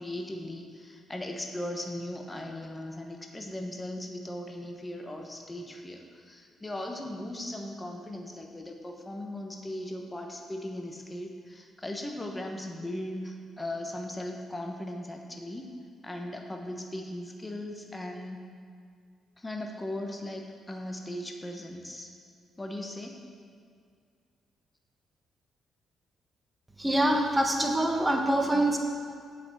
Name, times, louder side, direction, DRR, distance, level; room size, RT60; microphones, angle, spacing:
voice 1, 0.0-15.7 16.0-18.5 19.4-22.1 22.6-23.2, left 1 dB, 15° left, 3 dB, 1.0 m, -38 dB
voice 2, 26.8-28.8, right 1 dB, 10° right, 2 dB, 1.3 m, -25 dB
7.9 x 5.9 x 7.3 m, 2.1 s
cardioid pair, 90°, 0 cm